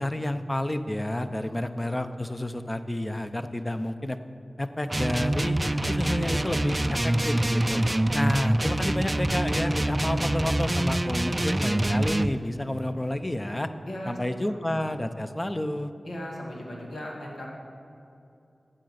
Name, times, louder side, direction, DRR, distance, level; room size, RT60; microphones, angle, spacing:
voice 1, 0.0-4.2 4.6-5.6 5.9-7.8 8.1-13.7 14.1-15.9, left 1 dB, 20° left, 9 dB, 0.6 m, -30 dB
sound 1, 4.9-12.3, right 1 dB, 25° right, 0.3 m, -25 dB
voice 2, 13.9-14.2 14.5-14.7 16.0-17.5, left 1 dB, 90° left, -3 dB, 2.1 m, -38 dB
9.0 x 7.7 x 8.0 m, 2.7 s
wide cardioid pair, 65°, 0 cm